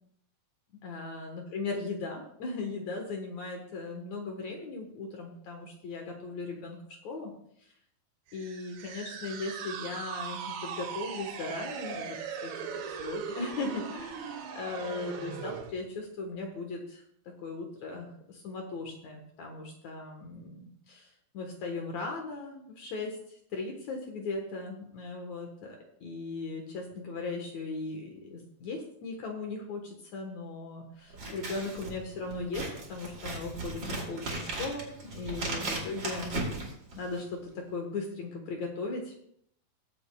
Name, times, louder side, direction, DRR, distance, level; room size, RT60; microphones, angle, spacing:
voice 1, 0.8-6.8 7.0-7.3 8.3-17.0 17.4-21.1 21.3-36.4 36.9-39.1, left 3 dB, 65° left, 2 dB, 1.8 m, -38 dB
sound 1, 8.3-15.7, right 7 dB, 85° right, 3.2 m, -39 dB
Scissors, 31.1-37.4, right 2 dB, 35° right, 2.6 m, -37 dB
22.0 x 7.8 x 2.3 m, 0.66 s
omnidirectional pair, 4.9 m